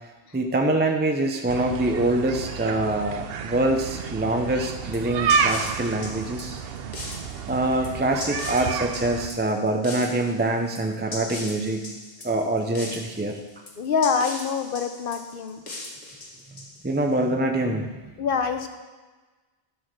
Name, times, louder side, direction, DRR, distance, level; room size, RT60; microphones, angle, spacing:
voice 1, 0.3-6.6 7.5-11.8 12.2-13.4 16.8-18.0, right 2 dB, 15° right, 3 dB, 0.5 m, -25 dB
sound 1, 1.5-9.3, right 6 dB, 70° right, 0.8 m, -30 dB
sound 2, 4.9-17.1, left 2 dB, 45° left, 1.3 m, -39 dB
voice 2, 13.8-15.6 18.2-18.7, left 5 dB, 60° left, 7 dB, 0.9 m, -25 dB
11.0 x 4.1 x 6.4 m, 1.3 s
omnidirectional pair, 1.1 m